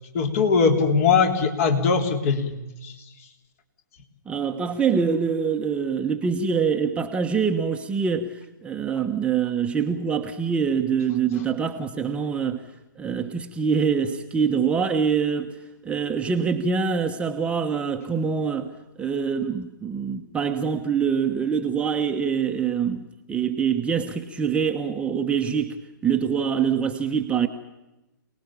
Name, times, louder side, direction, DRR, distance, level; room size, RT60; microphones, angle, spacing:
voice 1, 0.1-2.5 2.8-2.9, left 5 dB, 40° left, 3.5 m, -20 dB
voice 2, 4.3-12.7 13.0-15.5 15.8-18.7 19.0-25.7 26.0-27.5, right 6 dB, 10° right, 1.1 m, -24 dB
28.0 x 19.5 x 7.3 m
figure-of-eight pair, 130°, 11 cm